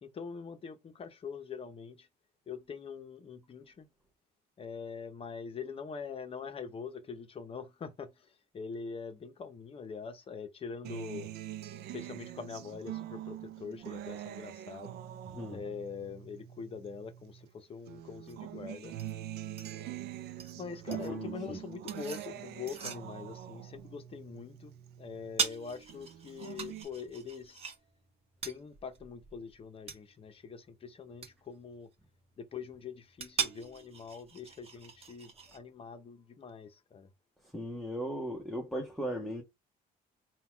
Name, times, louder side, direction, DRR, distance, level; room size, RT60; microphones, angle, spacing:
voice 1, 0.0-2.1 2.5-3.9 4.6-11.3 11.9-15.0 15.5-19.0 20.5-27.6 28.4-31.9 32.4-37.1, left 5 dB, 35° left, 0.8 m, -43 dB
Acoustic guitar, 10.8-17.5 17.9-25.5 25.9-26.8, right 12 dB, 75° right, 0.5 m, -44 dB
sound 1, 18.3-35.6, right 6 dB, 35° right, 1.0 m, -42 dB
voice 2, 20.9-21.6 37.5-39.4, equal, ahead, 0.9 m, -37 dB
4.0 x 2.3 x 4.5 m
cardioid pair, 110°, 17 cm